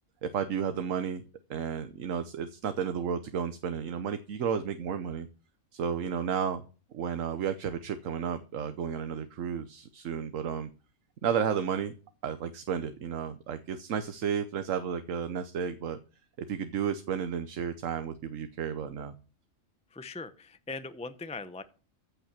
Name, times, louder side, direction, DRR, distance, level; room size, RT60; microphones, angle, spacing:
voice 1, 0.2-1.2 1.5-5.3 5.7-6.6 6.9-10.7 11.2-11.9 12.2-16.0 16.5-19.1, right 7 dB, 80° right, 10 dB, 1.2 m, -32 dB
voice 2, 19.9-21.6, left 3 dB, 5° left, 12 dB, 0.5 m, -40 dB
14.5 x 5.8 x 7.4 m, 0.36 s
omnidirectional pair, 1.4 m